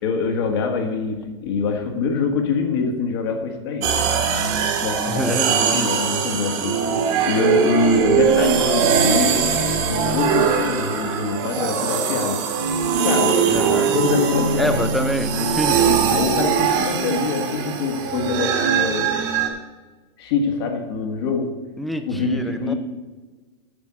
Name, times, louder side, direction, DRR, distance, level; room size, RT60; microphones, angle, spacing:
voice 1, 0.0-3.9 4.8-6.8 7.2-9.4 9.9-12.4 13.0-13.6 13.9-14.7 15.7-19.1 20.2-21.6 22.1-22.7, left 5 dB, 60° left, 3 dB, 1.6 m, -24 dB
sound 1, 3.8-19.5, right 7 dB, 45° right, 1.5 m, -21 dB
voice 2, 5.1-5.9 13.5-13.9 14.6-16.0 21.8-22.7, equal, ahead, 8 dB, 0.5 m, -26 dB
Bowed string instrument, 13.8-19.1, right 3 dB, 85° right, 0.9 m, -31 dB
8.7 x 5.6 x 7.4 m, 1.3 s
supercardioid pair, 160°, 15 cm